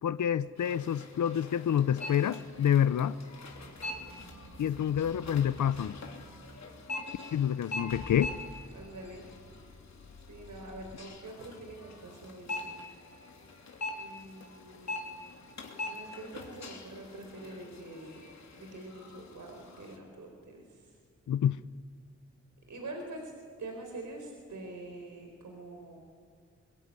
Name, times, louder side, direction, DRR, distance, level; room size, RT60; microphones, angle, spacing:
voice 1, 0.0-3.2 4.6-6.0 7.3-8.3 21.3-21.6, left 9 dB, 90° left, 0.6 m, -28 dB
sound 1, 0.6-20.0, left 2 dB, 65° left, 3.2 m, -44 dB
sound 2, 3.4-8.7, right 2 dB, 45° right, 3.8 m, -53 dB
Car / Engine starting / Idling, 7.5-11.0, left 3 dB, 45° left, 3.1 m, -50 dB
voice 2, 8.7-9.3 10.3-12.9 14.0-15.2 15.8-18.2 18.5-20.8 22.7-23.3 23.6-26.0, right 2 dB, 85° right, 4.3 m, -45 dB
24.5 x 23.0 x 9.7 m
wide cardioid pair, 120°, 29 cm